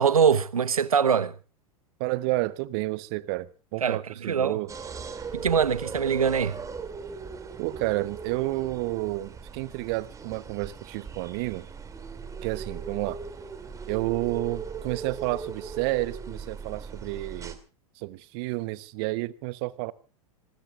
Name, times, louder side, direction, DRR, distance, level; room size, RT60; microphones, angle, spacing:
voice 1, 0.0-1.3 3.8-4.0 4.3-4.6 5.3-6.6, right 7 dB, 75° right, 1.0 m, -23 dB
voice 2, 2.0-4.7 7.6-11.7 12.4-13.2 13.9-17.6 18.0-19.9, right 20 dB, 45° right, 0.9 m, -30 dB
sound 1, 4.7-17.6, right 5 dB, 15° right, 2.5 m, -39 dB
26.5 x 20.0 x 2.4 m
figure-of-eight pair, 95°, 18 cm